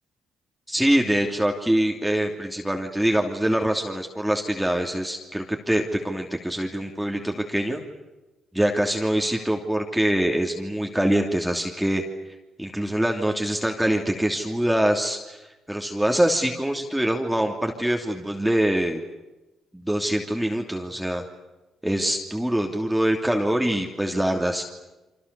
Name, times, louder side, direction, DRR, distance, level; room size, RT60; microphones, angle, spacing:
voice 1, 0.7-7.8 8.5-12.0 12.6-15.4 15.7-19.0 19.7-21.2 21.8-24.6, right 1 dB, 5° right, 2 dB, 2.9 m, -24 dB
29.0 x 25.0 x 6.9 m, 1.1 s
supercardioid pair, 70°, 0 cm